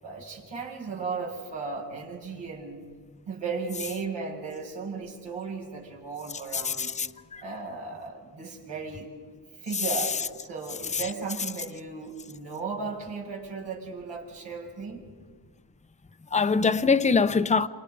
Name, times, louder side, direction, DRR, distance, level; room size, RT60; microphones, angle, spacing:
voice 1, 0.0-2.9 3.3-6.9 7.4-9.1 9.6-15.0, right 4 dB, 80° right, 7.3 m, -36 dB
voice 2, 6.6-7.1 7.3-7.4 16.3-17.7, left 5 dB, 15° left, 0.8 m, -23 dB
28.5 x 27.0 x 5.3 m
cardioid pair, 75°, 43 cm